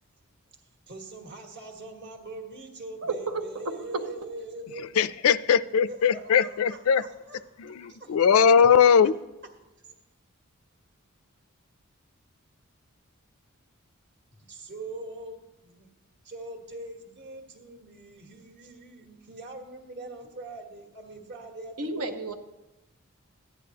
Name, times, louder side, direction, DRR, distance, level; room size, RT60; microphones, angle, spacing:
voice 1, 0.9-5.0 5.9-7.4 7.6-8.2 9.8-9.9 14.3-15.9 16.2-22.2, right 2 dB, 55° right, 1.4 m, -42 dB
voice 2, 3.0-3.4 8.7-8.8 21.8-22.3, right 3 dB, 85° right, 0.9 m, -31 dB
voice 3, 4.8-7.0 7.6-9.1, left 7 dB, 70° left, 0.4 m, -20 dB
14.5 x 10.0 x 2.8 m
head